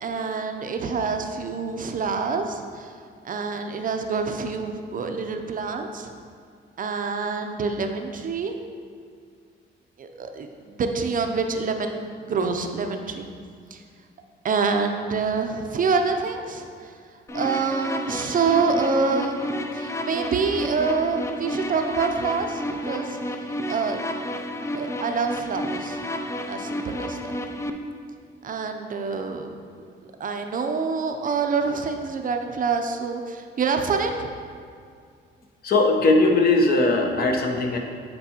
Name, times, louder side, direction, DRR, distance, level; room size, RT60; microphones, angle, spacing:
voice 1, 0.0-2.9 3.2-6.1 6.8-8.5 10.0-13.2 13.7-13.8 14.4-16.7 17.3-23.2 23.7-24.0 24.7-26.0 26.5-27.2 28.4-29.5 30.2-34.1, right 4 dB, 45° right, 5 dB, 0.5 m, -26 dB
sound 1, 17.3-27.7, left 1 dB, 15° left, 0.4 m, -31 dB
voice 2, 35.6-37.8, left 2 dB, 50° left, 2 dB, 0.9 m, -19 dB
8.3 x 4.6 x 2.9 m, 2.2 s
cardioid pair, 90°, 20 cm